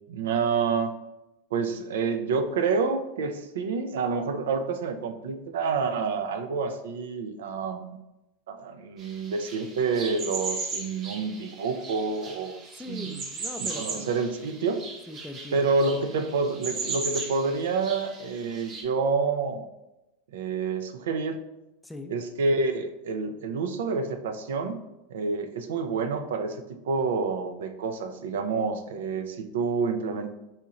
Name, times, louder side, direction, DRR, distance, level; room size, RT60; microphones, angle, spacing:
voice 1, 0.1-0.9 1.5-8.0 8.5-12.6 12.9-13.1 13.7-14.8 15.5-19.7 20.3-21.4 22.1-24.8 25.1-30.3, right 4 dB, 80° right, 7 dB, 0.3 m, -28 dB
sound 1, 9.0-18.8, right 4 dB, 35° right, 0.7 m, -37 dB
voice 2, 12.8-14.2 15.1-15.7 21.8-22.1, left 2 dB, 5° left, 6 dB, 0.3 m, -40 dB
4.1 x 2.8 x 2.4 m, 0.96 s
supercardioid pair, 125°, 0 cm